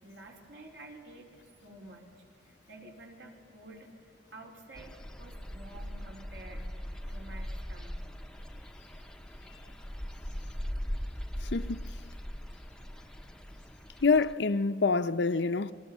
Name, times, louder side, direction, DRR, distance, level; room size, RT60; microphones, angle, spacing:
voice 1, 0.0-2.1 2.4-3.9 4.3-6.7 7.1-8.0 13.8-14.1, right 2 dB, 75° right, 4.1 m, -50 dB
sound 1, 4.7-14.3, equal, 5° left, 0.6 m, -40 dB
voice 2, 11.4-11.9 14.0-15.7, left 4 dB, 70° left, 0.7 m, -26 dB
29.5 x 22.0 x 7.3 m
head